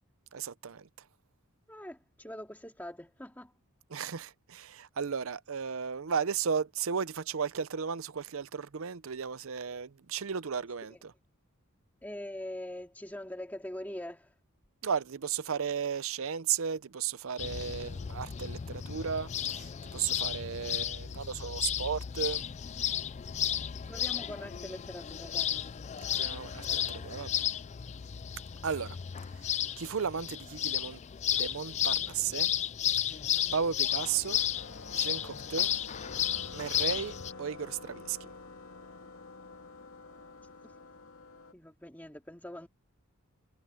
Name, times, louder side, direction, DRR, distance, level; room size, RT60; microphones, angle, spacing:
voice 1, 0.3-0.9 3.9-11.1 14.8-22.4 26.2-27.4 28.6-29.0 29.4-31.0 31.3-32.5 33.5-34.4 34.9-35.7 36.5-38.3, right 7 dB, 65° right, 0.6 m, -35 dB
voice 2, 1.7-3.5 10.9-11.0 12.0-14.3 23.9-25.6 40.6-40.7 41.5-42.7, left 1 dB, 10° left, 2.6 m, -43 dB
sound 1, 17.4-37.3, left 10 dB, 30° left, 0.3 m, -33 dB
sound 2, 34.5-41.5, left 3 dB, 65° left, 2.7 m, -48 dB
head